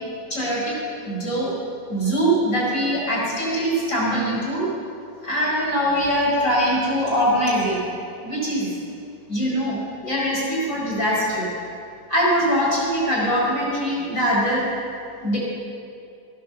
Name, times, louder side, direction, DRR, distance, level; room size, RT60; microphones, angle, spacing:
voice 1, 0.3-0.7 1.0-1.5 1.9-4.7 5.2-7.8 8.2-8.7 9.3-11.5 12.1-14.7 15.2-15.4, equal, 40° left, -6 dB, 5.0 m, -22 dB
14.0 x 10.0 x 7.1 m, 2.6 s
omnidirectional pair, 2.0 m